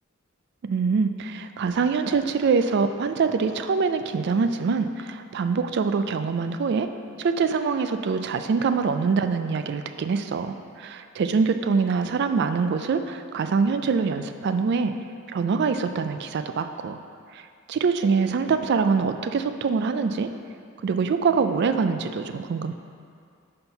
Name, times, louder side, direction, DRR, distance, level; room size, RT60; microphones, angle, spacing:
voice 1, 0.6-6.9 7.2-14.9 15.3-17.0 17.3-17.4 17.7-20.3 20.8-22.7, right 5 dB, 55° right, 9 dB, 0.3 m, -24 dB
5.5 x 4.4 x 5.4 m, 2.4 s
head